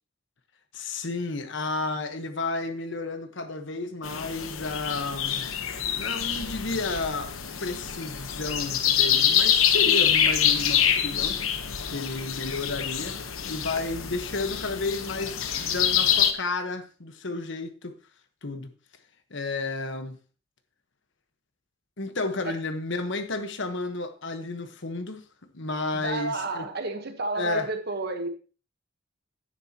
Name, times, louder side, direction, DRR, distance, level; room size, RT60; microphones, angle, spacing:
voice 1, 0.7-5.5 6.0-7.3 7.6-11.4 11.9-13.2 13.5-17.9 18.4-18.7 19.3-20.2 22.0-25.2 25.5-26.6 27.4-27.7, left 3 dB, 60° left, 1.2 m, -32 dB
sound 1, 4.0-16.3, left 9 dB, 90° left, 1.1 m, -26 dB
voice 2, 25.9-28.3, right 2 dB, 50° right, 1.2 m, -31 dB
10.5 x 9.9 x 2.9 m
head